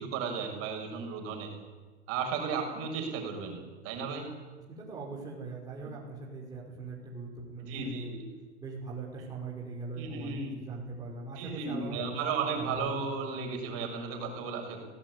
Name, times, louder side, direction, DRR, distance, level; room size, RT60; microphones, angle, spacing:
voice 1, 0.0-1.5 2.1-4.3 7.6-8.2 9.9-10.6 11.4-14.8, right 5 dB, 40° right, 3 dB, 6.7 m, -34 dB
voice 2, 4.7-8.1 8.6-12.0 12.5-13.0, right 3 dB, 10° right, -4 dB, 5.7 m, -41 dB
23.5 x 17.5 x 9.7 m, 1.4 s
supercardioid pair, 140°, 35 cm